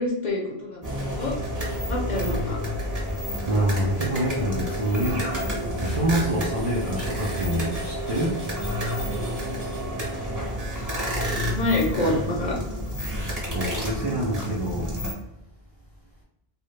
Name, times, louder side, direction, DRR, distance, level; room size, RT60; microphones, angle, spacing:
voice 1, 0.0-1.4 1.9-2.6 11.4-12.6, left 2 dB, 55° left, -2 dB, 0.6 m, -27 dB
sound 1, 0.8-15.1, equal, 20° right, 0.7 m, -29 dB
voice 2, 3.5-5.3 5.7-8.4 13.5-14.9, right 1 dB, 55° right, -4 dB, 0.4 m, -26 dB
2.1 x 2.0 x 3.1 m, 0.87 s
omnidirectional pair, 1.1 m